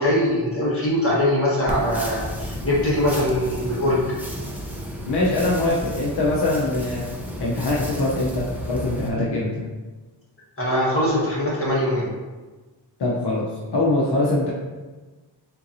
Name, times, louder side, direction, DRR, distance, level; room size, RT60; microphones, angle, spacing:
voice 1, 0.0-4.0 10.6-12.1, left 1 dB, 30° left, -7 dB, 1.4 m, -22 dB
sound 1, 1.7-9.1, equal, 5° right, 0.5 m, -32 dB
voice 2, 5.1-7.1 7.4-9.6 13.0-14.5, left 2 dB, 70° left, -4 dB, 0.7 m, -23 dB
4.4 x 3.8 x 2.6 m, 1.3 s
wide cardioid pair, 145°, 42 cm